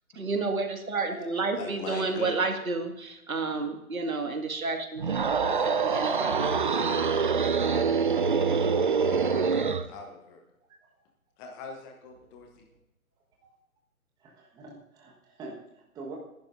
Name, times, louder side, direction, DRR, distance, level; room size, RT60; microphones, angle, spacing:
voice 1, 0.1-6.5, right 3 dB, 70° right, 5 dB, 2.1 m, -31 dB
voice 2, 1.5-2.3 5.5-7.7 8.5-10.4 11.4-12.7, left 4 dB, 10° left, 3 dB, 0.7 m, -42 dB
sound 1, 5.0-9.9, right 5 dB, 35° right, 0.5 m, -25 dB
voice 3, 14.2-16.2, right 3 dB, 10° right, 0 dB, 1.3 m, -44 dB
19.0 x 11.5 x 2.6 m, 0.89 s
figure-of-eight pair, 140°, 43 cm